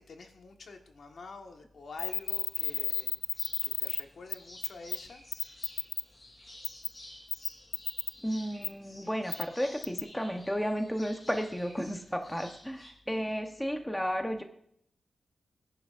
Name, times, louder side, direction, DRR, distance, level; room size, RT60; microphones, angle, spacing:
voice 1, 0.0-5.2 12.2-12.3, left 3 dB, 60° left, 4 dB, 1.4 m, -47 dB
sound 1, 2.0-4.0 4.3-4.4 4.6-5.0 5.3-6.0 6.6-6.9 7.3-8.1 8.6-8.7 9.3-9.4 9.8-10.0, left 7 dB, 85° left, 0.3 m, -31 dB
sound 2, 2.0-12.9, left 1 dB, 30° left, 3.6 m, -52 dB
voice 2, 8.2-14.4, equal, 5° left, 4 dB, 0.9 m, -33 dB
22.0 x 10.5 x 2.5 m, 0.68 s
wide cardioid pair, 170°, 0 cm